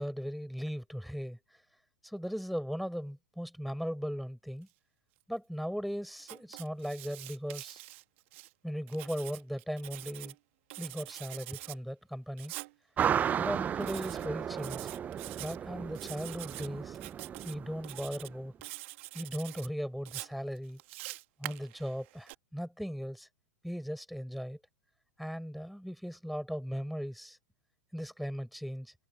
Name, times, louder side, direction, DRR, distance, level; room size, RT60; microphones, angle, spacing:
voice 1, 0.0-1.4 2.0-4.7 5.3-7.8 8.6-10.3 10.8-12.5 13.4-14.9 15.4-17.0 17.4-18.5 19.1-20.8 21.4-23.3 23.6-24.6 25.2-27.4 27.9-28.9, equal, ahead, 6.6 m, -38 dB
Writing, 6.2-8.5 8.9-10.4 10.7-11.8 12.4-12.7 13.8-14.3 14.6-15.6 15.9-16.7 16.9-17.5 17.8-18.3 18.6-19.7 20.1-22.3, right 21 dB, 55° right, 1.7 m, -45 dB
sound 1, 13.0-18.3, right 8 dB, 20° right, 0.4 m, -34 dB
hypercardioid pair, 110°, 8 cm